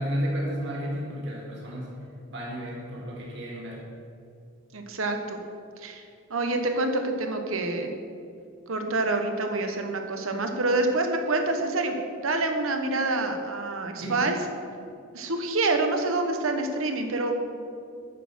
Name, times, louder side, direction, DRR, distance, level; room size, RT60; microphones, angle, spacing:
voice 1, 0.0-1.9 2.3-3.8 14.0-14.4, equal, 55° right, -4 dB, 1.9 m, -32 dB
voice 2, 4.7-5.4 5.8-6.0 6.3-7.9 8.7-14.4 15.1-17.4, right 2 dB, 75° right, 5 dB, 1.1 m, -27 dB
8.9 x 6.4 x 6.2 m, 2.5 s
head